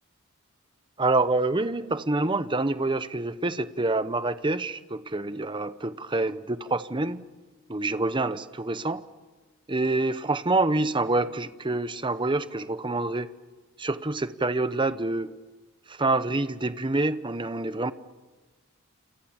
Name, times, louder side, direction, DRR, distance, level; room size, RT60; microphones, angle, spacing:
voice 1, 1.0-7.2 7.7-9.0 9.7-13.3 13.8-15.3 15.9-17.9, right 2 dB, 25° right, 13 dB, 0.9 m, -27 dB
28.5 x 27.0 x 7.4 m, 1.3 s
head